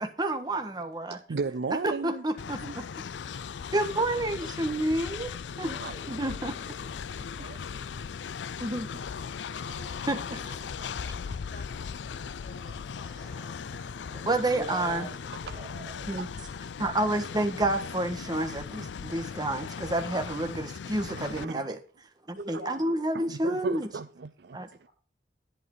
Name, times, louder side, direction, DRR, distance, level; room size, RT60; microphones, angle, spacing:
voice 1, 0.0-1.2 1.8-2.8 3.7-5.3 5.6-5.8 6.1-6.6 8.6-8.9 10.1-10.7 13.0-13.5 14.1-15.1 16.1-16.3 16.8-21.8 22.3-23.9 24.5-24.7, right 1 dB, 25° right, 1.5 m, -30 dB
voice 2, 1.1-2.2 5.8-5.9 7.4-7.8 14.4-14.6 16.1-16.3 20.9-21.7 23.1-24.9, right 4 dB, 65° right, 0.5 m, -36 dB
Train, 2.4-21.4, left 6 dB, 90° left, 0.4 m, -38 dB
voice 3, 3.5-4.6 5.2-6.1 6.8-6.9 11.0-13.4 13.9-14.4 14.8-15.1, left 2 dB, 45° left, 2.1 m, -54 dB
voice 4, 5.6-7.6 9.4-10.3 10.7-10.9 13.1-13.4 14.5-16.1 22.4-23.7 24.8-24.9, right 1 dB, 50° right, 6.5 m, -45 dB
11.0 x 11.0 x 4.0 m
head